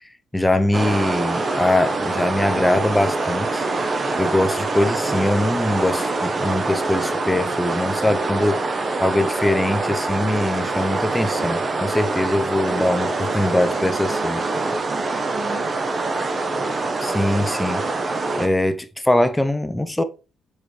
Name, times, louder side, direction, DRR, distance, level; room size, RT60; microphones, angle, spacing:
voice 1, 0.3-3.7 4.2-8.6 9.0-14.4 17.0-17.9 18.4-20.0, left 1 dB, 10° left, 0.8 m, -22 dB
sound 1, 0.7-18.5, right 3 dB, 35° right, 0.9 m, -24 dB
voice 2, 12.2-15.7, right 4 dB, 60° right, 1.6 m, -37 dB
6.5 x 4.4 x 3.3 m
cardioid pair, 90°, 0 cm